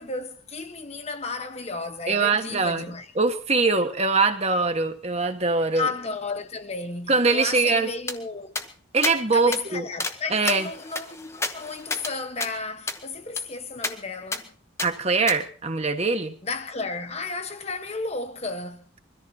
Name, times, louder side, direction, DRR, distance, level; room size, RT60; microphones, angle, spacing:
voice 1, 0.0-3.1 5.7-8.5 9.3-14.5 16.4-18.9, left 3 dB, 30° left, 1.2 m, -33 dB
voice 2, 2.1-2.8 3.2-5.9 7.1-7.9 8.9-9.8 10.3-10.7 14.8-16.4, right 4 dB, 30° right, 1.4 m, -22 dB
sound 1, 8.1-8.2 8.5-8.7 9.0-9.2 9.5-9.6 10.0-10.2 10.5-12.1 12.4-12.5 12.9-13.0 13.4-13.5 13.8-13.9 14.3-14.4 14.8-14.9 15.3-15.4, left 3 dB, 15° left, 1.0 m, -30 dB
22.5 x 14.0 x 4.4 m
head